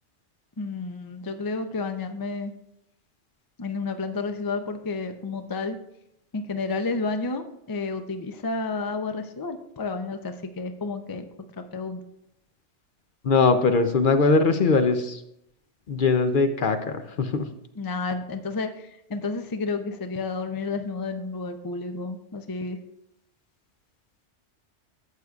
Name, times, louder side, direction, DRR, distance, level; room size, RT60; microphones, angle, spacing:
voice 1, 0.6-2.5 3.6-5.8 6.3-11.2 11.6-12.0 17.8-22.8, left 3 dB, 30° left, 7 dB, 0.4 m, -31 dB
voice 2, 13.2-15.2 15.9-17.5, left 4 dB, 50° left, 8 dB, 0.7 m, -21 dB
13.5 x 8.0 x 2.4 m, 0.79 s
omnidirectional pair, 1.2 m